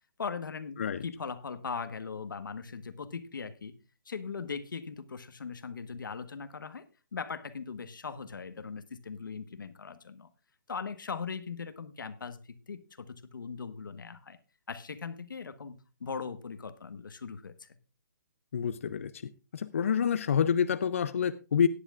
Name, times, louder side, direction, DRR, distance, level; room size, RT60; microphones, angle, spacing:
voice 1, 0.2-3.7 4.0-10.3 10.7-14.4 14.7-17.8, left 5 dB, 85° left, 1.3 m, -40 dB
voice 2, 18.5-19.2 19.5-21.7, left 7 dB, 45° left, 0.5 m, -27 dB
17.5 x 9.9 x 2.4 m
hypercardioid pair, 175°, 11 cm